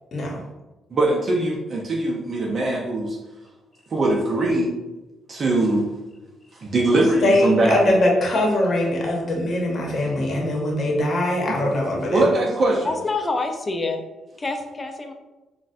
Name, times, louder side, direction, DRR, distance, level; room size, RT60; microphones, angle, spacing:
voice 1, 0.1-0.4 6.9-12.3, left 1 dB, 50° left, -1 dB, 0.8 m, -22 dB
voice 2, 0.9-3.2 3.9-4.7 5.3-5.9 6.6-7.8 11.6-11.7 12.1-12.9, right 2 dB, 45° right, -2 dB, 0.5 m, -21 dB
voice 3, 12.8-14.0 14.4-15.1, left 3 dB, 25° left, 5 dB, 0.4 m, -26 dB
4.0 x 2.1 x 2.4 m, 1.1 s
cardioid pair, 90°, 0 cm